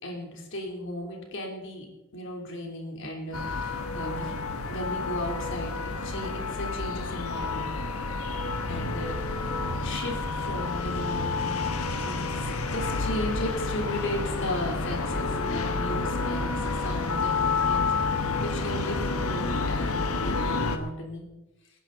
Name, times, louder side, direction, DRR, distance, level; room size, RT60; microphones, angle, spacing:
voice 1, 0.0-1.9 2.1-4.4 4.7-7.7 8.7-9.2 9.8-17.9 18.4-21.3, left 1 dB, 55° left, 1 dB, 3.4 m, -35 dB
sound 1, 3.3-20.8, left 3 dB, 80° left, 1.3 m, -29 dB
25.0 x 10.5 x 4.0 m, 1.0 s
head